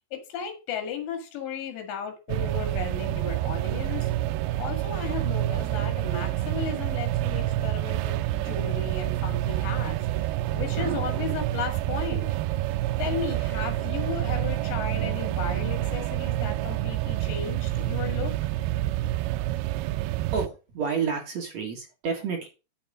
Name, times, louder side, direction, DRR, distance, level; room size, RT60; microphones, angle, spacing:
voice 1, 0.1-4.1 4.6-12.3 13.0-18.5, left 6 dB, 90° left, 5 dB, 4.1 m, -35 dB
sound 1, 2.3-20.5, right 15 dB, 80° right, 2.3 m, -28 dB
voice 2, 20.3-22.5, right 5 dB, 50° right, 2 dB, 2.4 m, -30 dB
10.0 x 6.8 x 5.0 m, 0.31 s
omnidirectional pair, 4.9 m